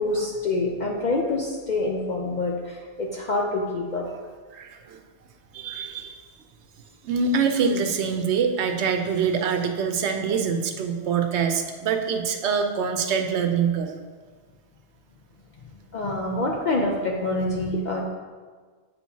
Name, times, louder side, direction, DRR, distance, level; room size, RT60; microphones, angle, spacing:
voice 1, 0.0-4.1 15.9-18.0, left 2 dB, 50° left, -1 dB, 0.6 m, -26 dB
voice 2, 4.5-5.0 5.5-6.3 7.0-13.9, right 6 dB, 80° right, 5 dB, 0.9 m, -25 dB
8.4 x 4.5 x 2.7 m, 1.5 s
omnidirectional pair, 1.2 m